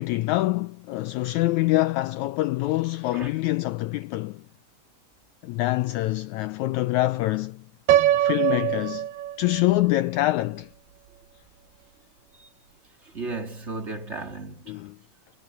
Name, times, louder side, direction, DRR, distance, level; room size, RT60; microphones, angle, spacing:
voice 1, 0.0-4.4 5.4-7.6 8.1-9.1 9.4-10.7 14.7-15.0, left 18 dB, 85° left, 1.6 m, -25 dB
Piano, 7.9-9.8, right 12 dB, 80° right, 2.7 m, -23 dB
voice 2, 13.0-14.8, right 3 dB, 25° right, 2.1 m, -35 dB
omnidirectional pair, 3.9 m